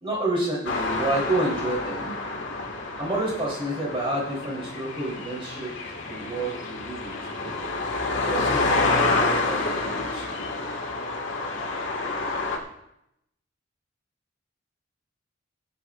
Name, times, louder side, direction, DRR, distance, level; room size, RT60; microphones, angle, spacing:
voice 1, 0.0-2.1 3.0-5.8 6.1-7.5 8.3-10.4, right 2 dB, 30° right, -4 dB, 3.5 m, -29 dB
sound 1, 0.6-12.6, left 3 dB, 85° left, 1.9 m, -28 dB
24.5 x 9.3 x 2.5 m, 0.81 s
head